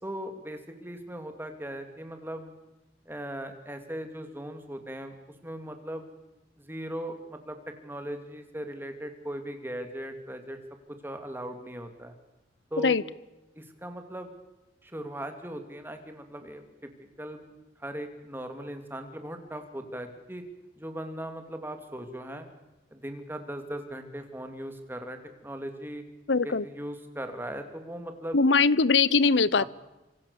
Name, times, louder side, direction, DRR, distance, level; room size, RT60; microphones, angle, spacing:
voice 1, 0.0-2.5 3.0-5.1 5.4-6.1 6.6-7.6 7.8-10.6 11.0-12.1 12.7-13.0 13.5-14.3 14.8-16.6 17.2-17.4 17.8-20.4 20.8-22.5 22.9-26.0 26.4-28.4 29.6-29.7, right 1 dB, 10° right, 2.8 m, -38 dB
voice 2, 26.3-26.6 28.3-29.6, left 4 dB, 80° left, 0.8 m, -21 dB
26.5 x 25.0 x 7.1 m
head